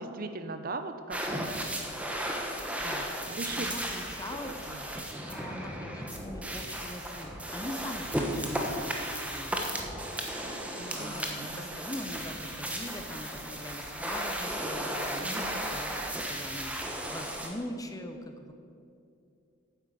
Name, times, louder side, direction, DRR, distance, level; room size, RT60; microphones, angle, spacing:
voice 1, 0.0-1.6 3.3-3.7 4.7-4.8 8.5-8.6 10.8-11.7 15.2-15.6, right 2 dB, 40° right, 9 dB, 0.6 m, -39 dB
sound 1, 1.1-17.5, right 1 dB, 5° right, 1.0 m, -35 dB
voice 2, 2.7-3.1 3.5-9.6 10.9-18.5, left 1 dB, 15° left, 6 dB, 0.7 m, -42 dB
9.2 x 8.7 x 7.6 m, 2.5 s
head